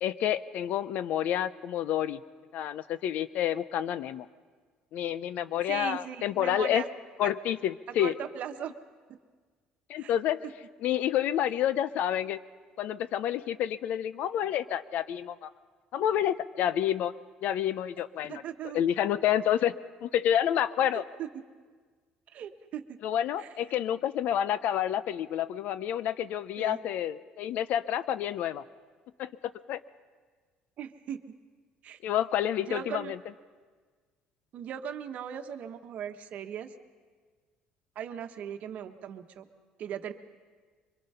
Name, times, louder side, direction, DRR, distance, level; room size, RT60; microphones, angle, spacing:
voice 1, 0.0-2.2 2.5-4.3 4.9-6.8 7.2-8.1 9.9-10.4 10.8-12.4 12.8-15.5 15.9-17.1 17.4-18.4 18.7-19.7 20.0-21.0 23.0-28.6 29.2-29.8 32.0-33.2, left 10 dB, 65° left, 15 dB, 0.7 m, -29 dB
voice 2, 5.7-6.9 7.2-7.3 8.0-8.7 9.1-9.2 10.0-10.1 18.3-18.8 20.9-21.4 22.3-23.0 23.4-23.5 26.6-26.8 30.8-31.3 31.8-32.0 32.6-33.1 34.5-36.7 37.9-39.4 39.8-40.1, right 9 dB, 60° right, 8 dB, 1.2 m, -38 dB
24.0 x 22.0 x 5.6 m, 1.5 s
cardioid pair, 105°, 3 cm